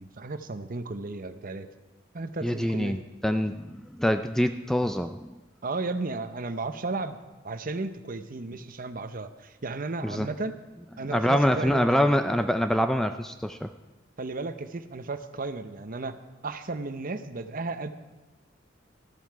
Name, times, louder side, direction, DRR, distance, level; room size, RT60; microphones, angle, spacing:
voice 1, 0.0-1.7 2.1-3.0 5.6-7.2 7.4-10.6 11.0-12.1 14.2-16.2 16.4-17.9, right 3 dB, 45° right, 10 dB, 0.8 m, -34 dB
voice 2, 2.4-5.3 10.0-10.3 11.1-13.7, equal, ahead, 8 dB, 0.3 m, -25 dB
13.5 x 12.5 x 4.7 m, 1.1 s
head